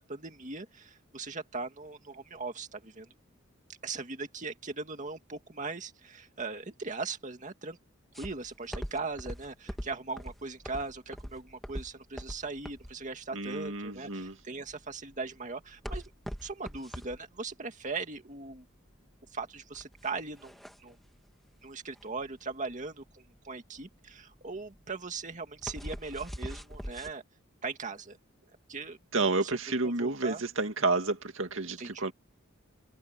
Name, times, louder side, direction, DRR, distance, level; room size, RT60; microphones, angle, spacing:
voice 1, 0.0-3.1 3.8-7.8 8.1-16.1 16.4-18.7 19.3-21.0 21.6-27.2 27.6-28.2 28.7-29.0 29.4-29.6 29.8-30.4 31.8-32.1, right 4 dB, 40° right, 2.1 m, -39 dB
sound 1, 8.1-27.1, equal, ahead, 2.0 m, -43 dB
voice 2, 13.3-14.3 29.1-32.1, right 3 dB, 70° right, 2.4 m, -30 dB
head